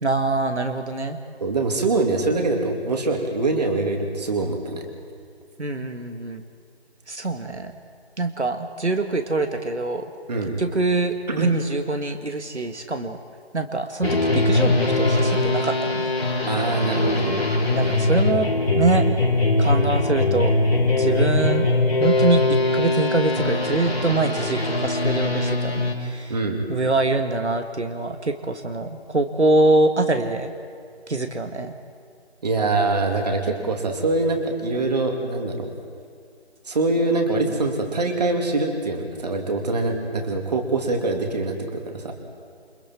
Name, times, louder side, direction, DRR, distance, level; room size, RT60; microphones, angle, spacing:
voice 1, 0.0-1.2 5.6-6.4 7.1-7.8 8.2-10.1 10.6-13.2 13.5-16.1 17.7-18.5 18.7-19.1 19.6-20.5 21.0-21.7 22.0-26.4 26.7-30.5 31.1-31.7, right 2 dB, 85° right, 6 dB, 1.8 m, -24 dB
voice 2, 1.4-4.8 10.3-10.5 11.4-11.5 16.5-17.4 26.3-26.6 32.4-35.7 36.7-42.1, right 2 dB, 40° right, 3 dB, 2.8 m, -24 dB
sound 1, 14.0-25.9, left 2 dB, 60° left, 4.3 m, -21 dB
28.5 x 25.0 x 4.5 m, 2.2 s
figure-of-eight pair, 160°, 33 cm